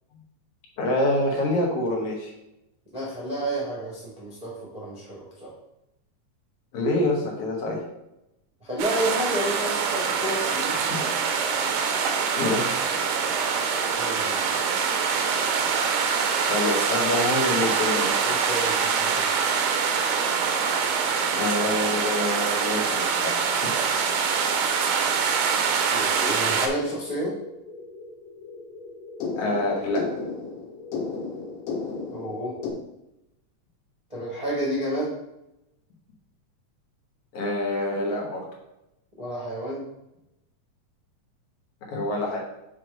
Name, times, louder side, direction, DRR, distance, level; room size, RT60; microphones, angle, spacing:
voice 1, 0.8-2.3 6.7-7.8 12.4-12.8 16.4-18.1 21.3-23.7 29.4-30.0 37.3-38.4 41.9-42.4, left 2 dB, 55° left, -1 dB, 2.1 m, -26 dB
voice 2, 2.9-5.5 8.6-11.1 14.0-14.4 18.2-19.3 25.9-27.3 32.1-32.5 34.1-35.2 39.2-39.9, right 1 dB, 65° right, -6 dB, 0.4 m, -31 dB
sound 1, 8.8-26.7, right 6 dB, 85° right, 2.2 m, -24 dB
sound 2, 26.2-32.7, left 4 dB, 85° left, 2.5 m, -35 dB
6.3 x 3.3 x 5.1 m, 0.89 s
omnidirectional pair, 3.7 m